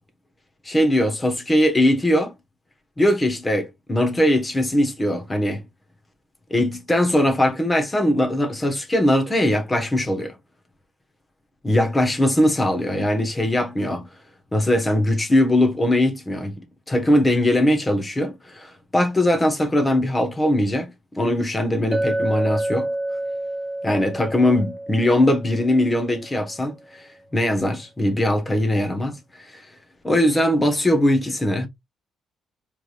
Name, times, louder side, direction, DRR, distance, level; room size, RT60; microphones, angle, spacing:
voice 1, 0.6-2.3 3.0-5.6 6.5-10.3 11.6-14.1 14.5-16.6 16.9-22.9 23.8-27.0 27.3-29.2 29.5-29.6 30.0-31.7, left 1 dB, 15° left, 1.1 m, -20 dB
Chink clink, 21.9-26.4, right 1 dB, 25° right, 0.8 m, -28 dB
4.7 x 3.3 x 2.4 m
cardioid pair, 145°, 0 cm